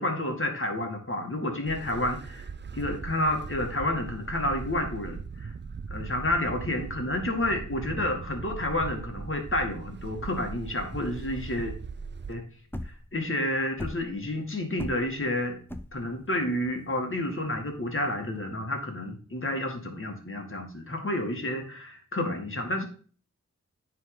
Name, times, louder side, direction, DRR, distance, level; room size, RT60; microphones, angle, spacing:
voice 1, 0.0-2.5 2.7-5.5 5.9-11.7 12.3-12.4 13.1-15.6 15.9-22.9, left 1 dB, 40° left, 2 dB, 2.2 m, -30 dB
sound 1, 1.7-12.3, right 5 dB, 35° right, 0.5 m, -39 dB
sound 2, 12.4-18.4, left 1 dB, 5° left, 0.8 m, -40 dB
9.5 x 3.9 x 5.0 m, 0.42 s
cardioid pair, 50°, 31 cm